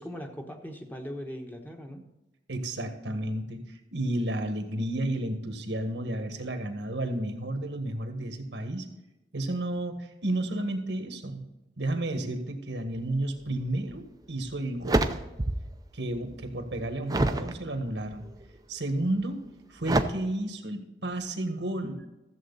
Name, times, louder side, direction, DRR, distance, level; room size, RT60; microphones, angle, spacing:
voice 1, 0.0-2.0, equal, 10° left, 2 dB, 1.2 m, -39 dB
voice 2, 2.5-8.9 9.3-11.5 11.8-15.1 15.9-18.3 18.7-19.4 19.7-22.1, right 1 dB, 90° right, 6 dB, 1.7 m, -32 dB
sound 1, 13.9-14.0 14.5-15.8 16.1-17.5 18.1-18.6 19.8-20.0, right 1 dB, 20° right, 0.6 m, -27 dB
14.0 x 7.7 x 4.1 m, 1.0 s
head